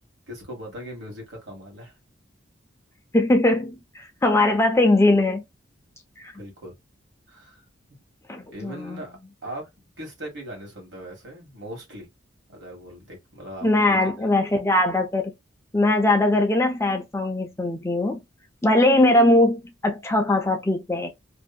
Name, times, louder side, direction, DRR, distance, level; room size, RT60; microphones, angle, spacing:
voice 1, 0.3-2.0 6.3-6.7 7.3-7.6 8.5-9.7 10.0-12.1 12.5-14.3, equal, 65° right, 1.4 m, -39 dB
voice 2, 3.1-5.4 6.2-6.3 8.3-9.0 13.6-15.3 15.7-18.2 18.6-21.1, left 2 dB, 15° left, 0.4 m, -20 dB
2.7 x 2.3 x 2.3 m
head